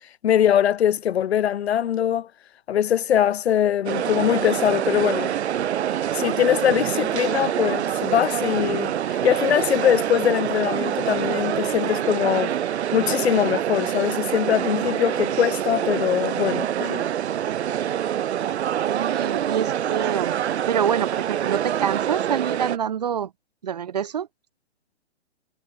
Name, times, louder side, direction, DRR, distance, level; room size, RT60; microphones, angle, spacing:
voice 1, 0.2-2.3 2.7-5.3 6.1-12.5 12.9-17.0, left 10 dB, 70° left, 0.8 m, -22 dB
sound 1, 3.9-22.8, right 10 dB, 75° right, 0.7 m, -26 dB
voice 2, 18.8-20.4 20.7-23.3 23.6-24.3, right 8 dB, 40° right, 0.5 m, -26 dB
hypercardioid pair, 175°, 33 cm